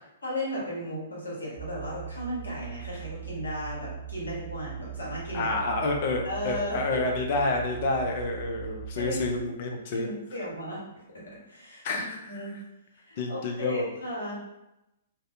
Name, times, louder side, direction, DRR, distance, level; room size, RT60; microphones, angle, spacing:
voice 1, 0.2-5.6 5.8-5.9 6.2-7.0 9.0-9.2 9.9-10.8 11.1-12.5 13.0-14.4, equal, 75° left, -5 dB, 1.1 m, -35 dB
sound 1, 1.6-9.4, right 8 dB, ahead, 1.0 m, -40 dB
voice 2, 5.3-10.1 11.8-12.5 13.2-13.9, left 3 dB, 45° left, 2 dB, 0.5 m, -29 dB
2.6 x 2.1 x 2.6 m, 0.92 s
figure-of-eight pair, 115°, 0 cm